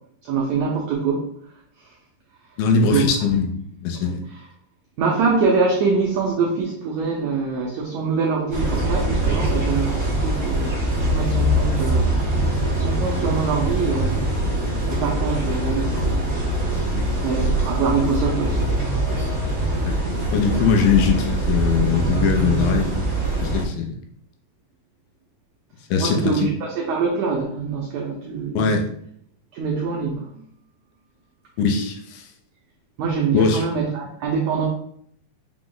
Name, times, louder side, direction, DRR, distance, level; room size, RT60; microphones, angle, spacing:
voice 1, 0.2-1.3 2.9-3.1 4.0-4.4 5.0-14.6 14.9-16.4 17.2-18.9 26.0-28.7 29.5-30.4 33.0-34.7, right 4 dB, 85° right, -2 dB, 1.6 m, -24 dB
voice 2, 2.6-4.2 16.9-17.2 19.8-19.9 20.3-23.0 23.4-23.9 25.9-26.5 28.6-28.9 31.6-32.3 33.3-33.7, left 5 dB, 80° left, 3 dB, 2.3 m, -21 dB
sound 1, 8.5-23.6, right 1 dB, 50° right, 1.0 m, -23 dB
5.8 x 2.0 x 3.7 m, 0.67 s
omnidirectional pair, 4.0 m